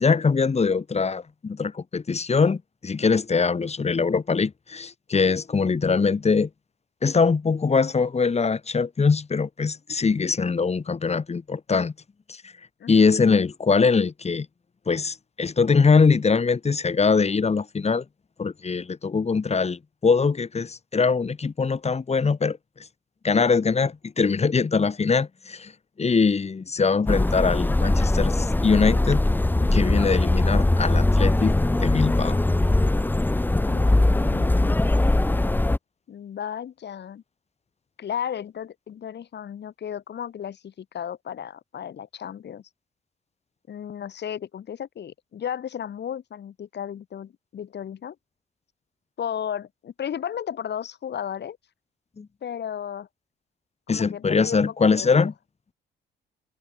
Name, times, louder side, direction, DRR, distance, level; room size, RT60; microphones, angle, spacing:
voice 1, 0.0-6.5 7.0-11.9 12.9-14.5 14.9-18.0 18.4-22.6 23.2-25.7 26.0-29.2 29.6-32.4 52.2-52.3 53.9-55.3, left 5 dB, 35° left, 4.0 m, -22 dB
sound 1, 27.1-35.8, left 2 dB, 10° left, 0.9 m, -21 dB
voice 2, 33.6-34.7 36.1-37.2 38.0-42.6 43.7-48.2 49.2-51.6 52.4-53.1 53.9-55.3, left 9 dB, 60° left, 6.0 m, -34 dB
cardioid pair, 90°, 20 cm